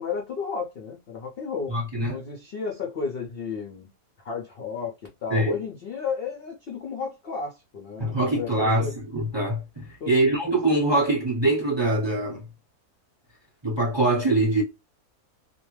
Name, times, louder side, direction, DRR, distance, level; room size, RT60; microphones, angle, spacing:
voice 1, 0.0-3.9 4.2-9.0 10.0-10.1, left 5 dB, 65° left, 0.5 m, -33 dB
voice 2, 1.7-2.2 5.3-5.6 8.0-12.5 13.6-14.6, right 2 dB, 20° right, 0.8 m, -23 dB
2.5 x 2.1 x 3.0 m
omnidirectional pair, 1.6 m